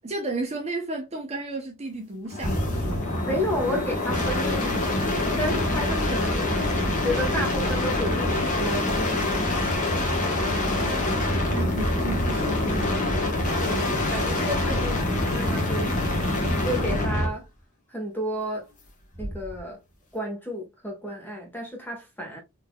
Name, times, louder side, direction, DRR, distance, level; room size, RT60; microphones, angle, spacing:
voice 1, 0.0-3.1 10.4-13.2 14.9-15.0, right 2 dB, 30° right, 0.6 m, -34 dB
sound 1, 2.3-17.4 19.1-19.6, left 1 dB, 35° left, 1.0 m, -25 dB
voice 2, 3.2-5.1 5.4-6.5 7.0-10.2 13.6-15.0 15.3-15.9 16.6-17.4 17.9-18.6 19.2-19.8 20.1-22.4, equal, 10° left, 1.2 m, -32 dB
3.8 x 2.8 x 2.2 m
head